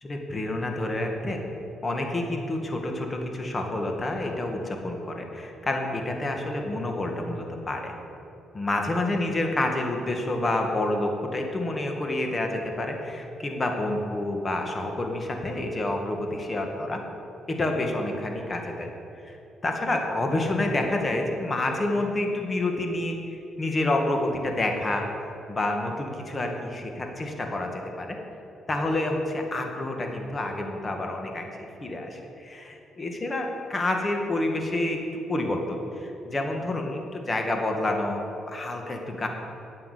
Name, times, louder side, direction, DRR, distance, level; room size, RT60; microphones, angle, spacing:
voice 1, 0.0-1.4 1.8-7.9 8.5-17.0 17.5-18.9 19.2-19.4 19.6-25.1 25.5-28.2 28.7-39.3, left 2 dB, 30° left, 3 dB, 1.8 m, -28 dB
9.6 x 8.7 x 8.2 m, 2.8 s
cardioid pair, 90°, 0 cm